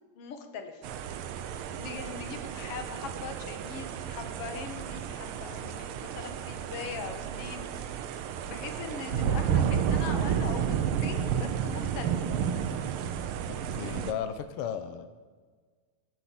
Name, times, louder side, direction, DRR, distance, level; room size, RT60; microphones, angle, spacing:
voice 1, 0.2-0.8 1.8-7.7 8.4-12.3, left 5 dB, 55° left, 7 dB, 2.2 m, -41 dB
sound 1, 0.8-14.1, right 8 dB, 85° right, 1.2 m, -31 dB
voice 2, 13.5-15.1, left 8 dB, 75° left, 10 dB, 1.3 m, -35 dB
21.0 x 8.1 x 7.6 m, 1.5 s
omnidirectional pair, 3.5 m